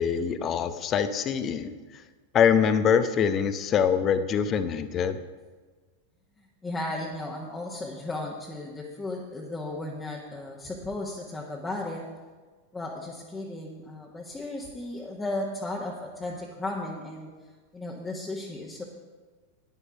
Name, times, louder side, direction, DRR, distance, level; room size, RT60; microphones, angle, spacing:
voice 1, 0.0-1.7 2.3-5.2, left 7 dB, 30° left, 11 dB, 0.7 m, -24 dB
voice 2, 6.4-12.0 12.7-17.3 17.7-18.8, left 2 dB, 10° left, -3 dB, 1.3 m, -35 dB
11.0 x 9.7 x 5.1 m, 1.4 s
figure-of-eight pair, 90°, 0 cm